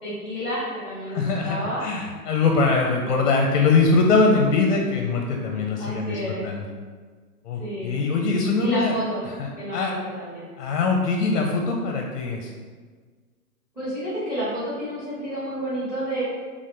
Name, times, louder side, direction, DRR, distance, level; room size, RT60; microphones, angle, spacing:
voice 1, 0.0-1.9 3.0-3.3 5.8-6.5 7.6-8.0 8.6-9.2 9.6-10.5 13.7-16.2, equal, 5° right, -11 dB, 1.3 m, -30 dB
voice 2, 1.1-6.7 7.4-9.0 9.4-9.9 10.6-12.5, left 3 dB, 50° left, 1 dB, 0.6 m, -22 dB
4.0 x 3.6 x 3.2 m, 1.5 s
hypercardioid pair, 150°, 47 cm